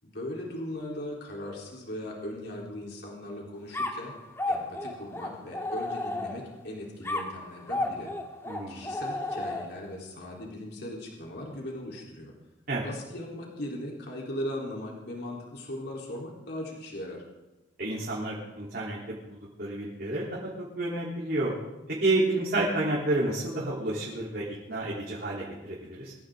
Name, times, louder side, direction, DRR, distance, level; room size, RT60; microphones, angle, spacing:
voice 1, 0.0-4.1 4.5-8.1 8.7-12.3 12.8-17.2, left 1 dB, 60° left, -2 dB, 4.0 m, -38 dB
sound 1, 3.7-6.6 7.0-9.9, left 2 dB, 15° left, 2.0 m, -33 dB
voice 2, 8.5-8.9 12.7-12.9 17.8-21.5 22.0-26.1, right 2 dB, 55° right, -6 dB, 3.7 m, -30 dB
23.0 x 16.0 x 3.9 m, 1.0 s
head